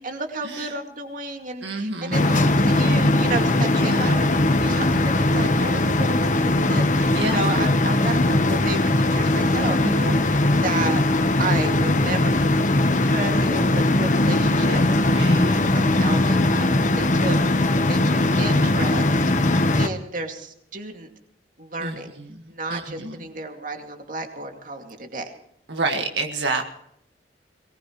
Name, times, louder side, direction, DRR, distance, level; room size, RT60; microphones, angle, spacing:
voice 1, 0.0-11.0 11.4-12.3 13.0-14.8 15.7-16.7 17.0-19.1 19.8-21.1 21.6-22.1 22.5-25.3, right 2 dB, 50° right, 4 dB, 2.4 m, -32 dB
voice 2, 1.6-2.3 3.8-4.2 4.6-4.8 7.1-7.5 9.8-10.3 15.1-15.5 21.8-21.9 22.7-23.2 25.7-26.6, right 2 dB, 85° right, 3 dB, 1.8 m, -28 dB
sound 1, 2.1-19.9, left 2 dB, 45° left, 1.1 m, -20 dB
22.5 x 19.5 x 3.2 m, 0.73 s
head